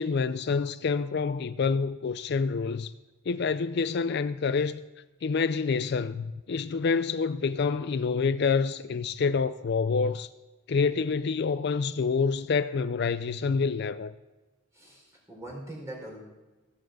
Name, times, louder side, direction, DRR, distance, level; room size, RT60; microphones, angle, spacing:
voice 1, 0.0-2.9 3.3-4.8 5.2-10.3 10.7-14.1, left 5 dB, 50° left, 0.4 m, -27 dB
voice 2, 14.7-16.2, right 1 dB, 15° right, 4.2 m, -42 dB
15.5 x 7.5 x 7.7 m
head